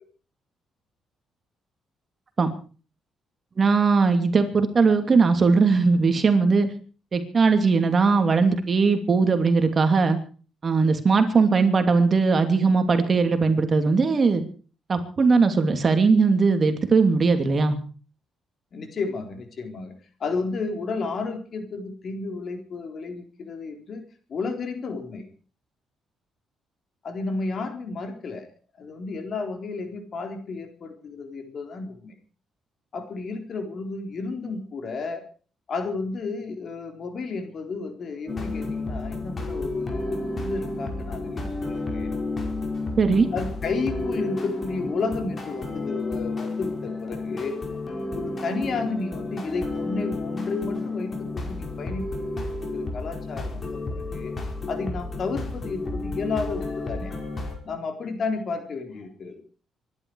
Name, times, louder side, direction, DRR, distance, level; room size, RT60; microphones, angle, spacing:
voice 1, 3.6-6.7 7.1-10.2 10.6-14.4 14.9-17.8 43.0-43.3, right 4 dB, 40° right, 7 dB, 2.7 m, -19 dB
voice 2, 18.7-24.0 24.3-25.3 27.0-28.5 28.8-32.1 32.9-35.3 35.7-42.1 43.3-47.6 48.1-52.2 52.5-54.4 54.7-57.1 57.6-59.4, left 4 dB, 55° left, 6 dB, 4.1 m, -32 dB
sound 1, 38.3-57.6, left 2 dB, 35° left, 5.3 m, -31 dB
25.0 x 11.5 x 4.8 m, 0.39 s
cardioid pair, 90°, 0 cm